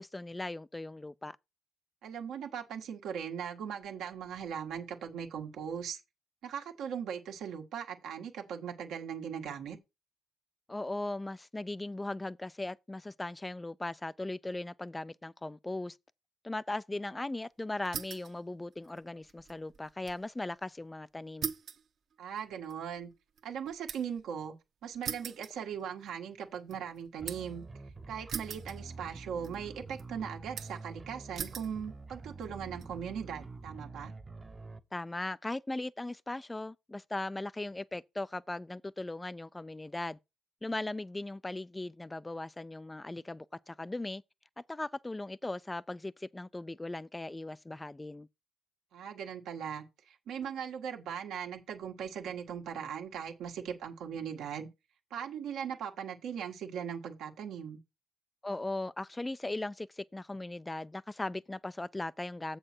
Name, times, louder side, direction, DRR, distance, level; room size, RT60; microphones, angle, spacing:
voice 1, 0.0-1.4 10.7-16.0 16.4-21.5 34.9-40.2 40.6-44.2 44.7-48.3 58.4-62.6, left 2 dB, 15° left, 0.3 m, -38 dB
voice 2, 2.0-6.0 6.4-9.8 22.2-23.1 23.4-24.5 24.8-27.6 28.1-34.1 48.9-54.7 55.1-57.8, right 8 dB, 80° right, 1.6 m, -39 dB
sound 1, 17.8-18.4 18.7-20.2 20.6-20.7 21.4-24.2 25.0-26.2 26.5-27.6 28.3-29.2 29.4-30.0 30.6-30.9 31.3-31.8 32.4-32.9, right 7 dB, 65° right, 1.2 m, -41 dB
sound 2, 27.2-34.8, right 3 dB, 25° right, 0.8 m, -47 dB
7.4 x 6.6 x 4.4 m
cardioid pair, 90°, 0 cm